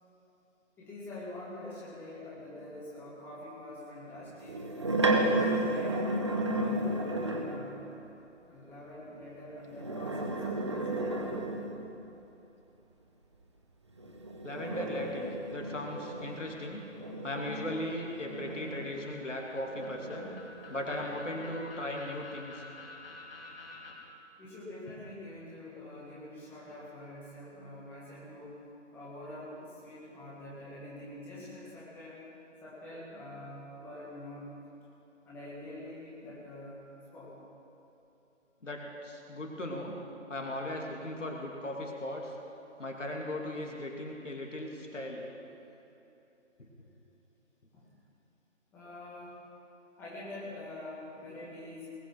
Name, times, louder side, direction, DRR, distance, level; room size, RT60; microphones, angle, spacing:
voice 1, 0.8-4.6 5.2-6.0 6.5-7.9 8.4-11.4 24.4-28.6 28.9-32.2 32.6-34.5 35.2-36.8 37.1-37.3 47.7-47.9 48.7-49.5 50.0-51.9, left 1 dB, 5° left, -8 dB, 1.7 m, -45 dB
sound 1, 4.4-7.7 9.7-12.0 14.0-19.2 19.7-21.5, right 1 dB, 25° right, 0.7 m, -33 dB
voice 2, 14.4-16.8 17.2-20.3 20.7-22.6 38.6-39.9 40.3-42.3 42.8-45.3 46.6-46.7, left 1 dB, 75° left, 0 dB, 2.7 m, -38 dB
sound 2, 17.4-23.9, left 3 dB, 50° left, 2.8 m, -50 dB
20.0 x 9.0 x 5.9 m, 3.0 s
figure-of-eight pair, 150°, 37 cm